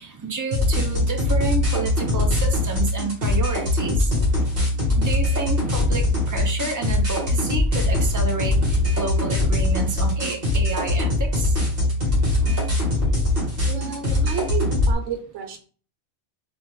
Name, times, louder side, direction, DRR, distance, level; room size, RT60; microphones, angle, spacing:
voice 1, 0.0-11.6 12.1-12.8 13.9-14.3, right 4 dB, 30° right, 3 dB, 0.3 m, -30 dB
sound 1, 0.5-14.9, left 2 dB, 55° right, 1.4 m, -22 dB
voice 2, 13.7-15.6, right 8 dB, 90° right, 4 dB, 1.0 m, -31 dB
3.6 x 2.4 x 3.0 m, 0.41 s
omnidirectional pair, 1.2 m